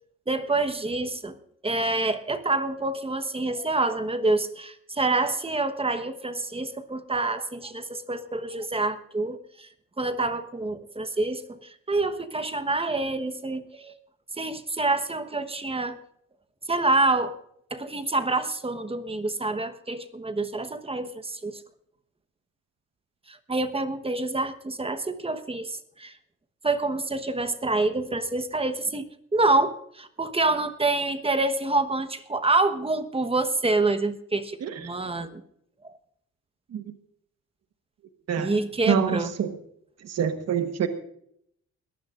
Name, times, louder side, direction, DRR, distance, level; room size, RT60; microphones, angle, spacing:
voice 1, 0.3-1.4 1.6-9.7 10.0-13.9 14.4-16.0 16.7-17.3 17.7-21.6 23.3-26.1 26.6-35.4 38.4-39.3, right 2 dB, 20° right, 9 dB, 1.2 m, -27 dB
voice 2, 34.6-34.9 36.7-36.8 38.3-38.5 38.9-39.6 40.0-40.9, right 8 dB, 55° right, 8 dB, 1.3 m, -26 dB
21.5 x 15.0 x 2.5 m, 0.70 s
cardioid pair, 90°, 30 cm